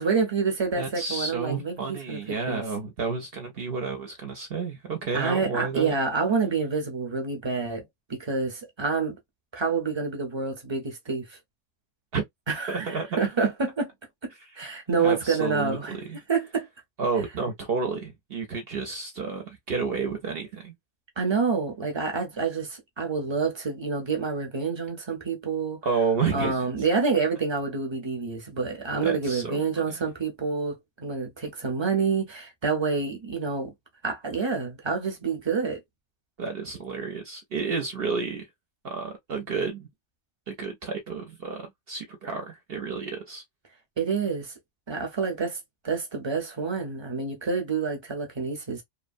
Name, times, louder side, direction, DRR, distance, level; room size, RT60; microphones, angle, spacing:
voice 1, 0.0-2.6 5.1-9.2 9.5-11.3 12.5-13.9 14.6-16.0 16.3-16.7 21.2-25.8 26.3-33.7 34.0-35.8 44.0-44.5 44.9-45.6 45.8-48.8, right 5 dB, 25° right, 0.7 m, -28 dB
voice 2, 0.8-6.0 12.1-12.2 12.7-13.2 15.0-15.8 16.1-16.2 17.0-20.7 25.8-26.7 29.0-29.6 36.4-38.4 38.8-39.9 40.5-43.4, right 4 dB, 60° right, 0.8 m, -30 dB
3.0 x 2.1 x 2.5 m
omnidirectional pair, 1.2 m